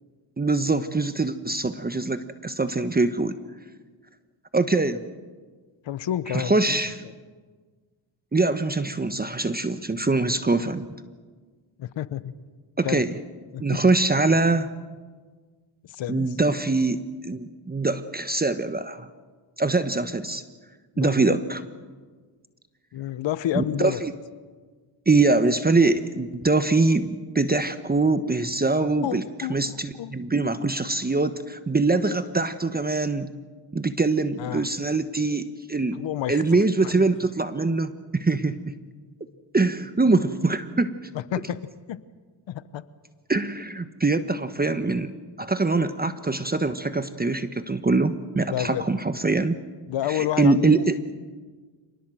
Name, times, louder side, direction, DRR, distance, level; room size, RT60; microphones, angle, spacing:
voice 1, 0.4-3.4 4.5-5.0 6.3-7.0 8.3-10.8 12.8-13.1 13.6-14.7 16.1-19.1 19.6-20.4 21.0-21.6 23.5-24.1 25.1-29.2 29.5-33.3 33.7-36.0 36.3-38.8 39.5-41.1 43.3-45.1 45.4-49.6 50.1-50.9, right 3 dB, 20° right, 10 dB, 1.2 m, -23 dB
voice 2, 5.8-7.1 11.8-12.3 12.8-13.1 13.5-13.8 15.8-16.3 20.9-21.4 22.9-24.0 29.0-30.1 34.4-34.7 35.9-36.9 41.1-41.6 41.9-42.0 42.5-42.8 48.5-48.9 49.9-50.9, left 11 dB, 75° left, 15 dB, 1.1 m, -30 dB
26.5 x 20.0 x 7.8 m, 1.5 s
cardioid pair, 70°, 45 cm